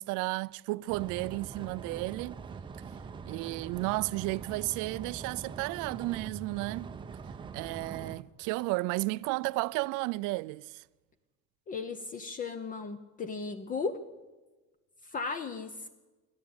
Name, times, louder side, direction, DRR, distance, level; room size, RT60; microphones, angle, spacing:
voice 1, 0.0-2.4 3.3-6.9 7.5-10.8, right 22 dB, 75° right, 0.5 m, -33 dB
sound 1, 0.9-8.2, right 5 dB, 15° right, 0.6 m, -43 dB
voice 2, 11.7-14.0 15.1-15.7, left 4 dB, 25° left, 0.8 m, -36 dB
27.5 x 11.5 x 8.8 m
cardioid pair, 180°, 31 cm